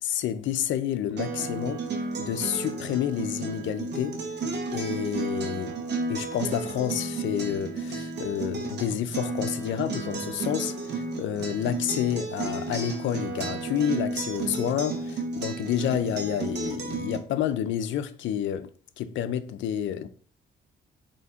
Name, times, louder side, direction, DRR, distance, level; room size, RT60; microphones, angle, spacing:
voice 1, 0.0-1.8 2.2-4.2 4.7-5.7 6.1-18.7 19.0-20.1, left 10 dB, 75° left, 0.5 m, -29 dB
Acoustic guitar, 1.2-17.2, right 3 dB, 60° right, 1.0 m, -33 dB
4.2 x 2.8 x 3.5 m
cardioid pair, 90°, 20 cm